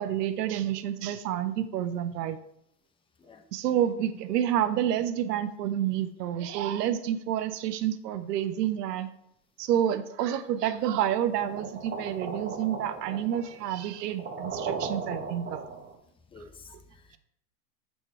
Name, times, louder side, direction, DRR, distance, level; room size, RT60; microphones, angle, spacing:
voice 1, 0.0-2.4 3.5-9.1 9.6-15.6 16.7-16.8, right 10 dB, 75° right, 11 dB, 0.7 m, -29 dB
sound 1, 11.4-16.0, right 4 dB, 20° right, 0.9 m, -37 dB
voice 2, 16.3-17.2, left 3 dB, 10° left, 6 dB, 0.6 m, -50 dB
8.0 x 4.5 x 4.3 m, 0.76 s
hypercardioid pair, 110°, 49 cm